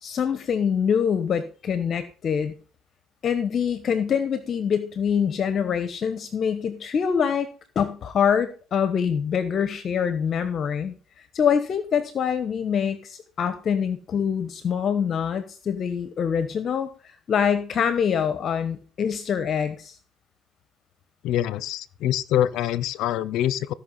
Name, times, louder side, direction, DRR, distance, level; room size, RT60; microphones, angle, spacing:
voice 1, 0.0-2.5 3.2-7.5 7.7-10.9 11.3-16.9 17.3-20.0, left 7 dB, 50° left, 11 dB, 1.1 m, -25 dB
voice 2, 21.2-23.7, left 12 dB, 75° left, 19 dB, 0.7 m, -25 dB
16.0 x 5.8 x 5.5 m, 0.39 s
cardioid pair, 95°, 0 cm